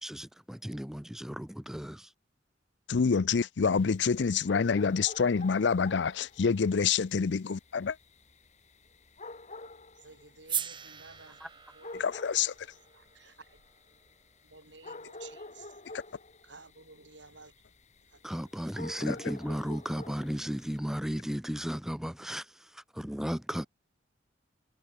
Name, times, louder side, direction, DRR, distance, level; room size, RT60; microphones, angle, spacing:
voice 1, 0.0-2.1 18.2-22.5 22.7-23.7, equal, ahead, 0.5 m, -35 dB
voice 2, 2.9-8.0 12.0-12.5 19.0-19.2, left 5 dB, 65° left, 0.5 m, -27 dB
sound 1, 3.7-20.8, left 2 dB, 40° left, 5.5 m, -49 dB
voice 3, 9.9-11.4 11.7-11.9 12.9-13.3 14.4-15.8 16.4-17.5 18.1-18.9 23.5-23.7, right 4 dB, 70° right, 5.4 m, -54 dB
sound 2, 10.5-14.7, right 8 dB, 25° right, 1.5 m, -41 dB
head